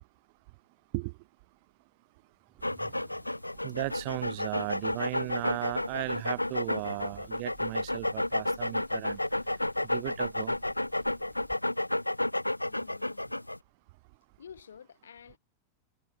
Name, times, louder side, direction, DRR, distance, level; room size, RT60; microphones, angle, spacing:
sound 1, 2.4-3.6, right 9 dB, 25° right, 6.8 m, -56 dB
sound 2, 2.6-13.6, left 1 dB, 85° left, 0.6 m, -31 dB
voice 1, 3.6-9.2 9.8-10.6, right 28 dB, 45° right, 0.4 m, -36 dB
Crackle, 3.7-11.6, left 4 dB, 15° left, 3.2 m, -60 dB
voice 2, 12.6-13.3 14.4-15.4, left 7 dB, 70° left, 3.1 m, -51 dB
figure-of-eight pair, 90°, 0 cm